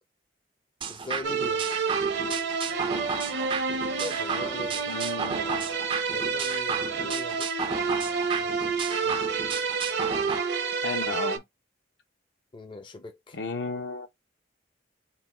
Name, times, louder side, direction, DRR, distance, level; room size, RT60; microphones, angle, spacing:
Nexsyn Shuffle Snare, 0.8-10.4, right 5 dB, 30° right, 0.4 m, -34 dB
voice 1, 0.9-1.7 4.0-5.7 6.1-7.5 8.3-8.7 9.0-9.2 12.5-13.4, left 2 dB, 25° left, 0.5 m, -41 dB
sound 1, 1.2-11.4, right 5 dB, 65° right, 0.7 m, -29 dB
voice 2, 4.9-5.5 10.8-11.4 13.3-14.1, left 4 dB, 65° left, 0.9 m, -33 dB
4.2 x 2.4 x 3.7 m
head